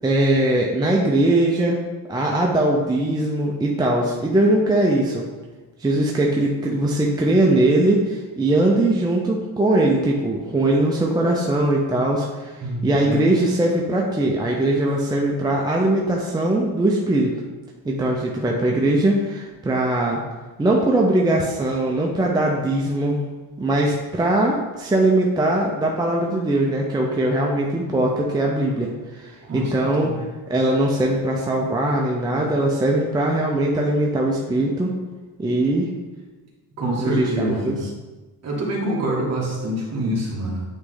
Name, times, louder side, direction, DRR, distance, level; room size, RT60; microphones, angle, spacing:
voice 1, 0.0-1.8 2.1-5.2 5.8-12.5 12.8-17.4 17.8-20.2 20.6-23.2 23.6-34.9 35.4-35.9 37.0-37.9, right 1 dB, 10° right, -1 dB, 0.5 m, -20 dB
voice 2, 12.6-13.2 29.4-30.2 36.8-37.8 38.4-40.6, right 1 dB, 45° right, -3 dB, 1.8 m, -26 dB
8.9 x 3.2 x 3.9 m, 1.2 s
cardioid pair, 155°, 36 cm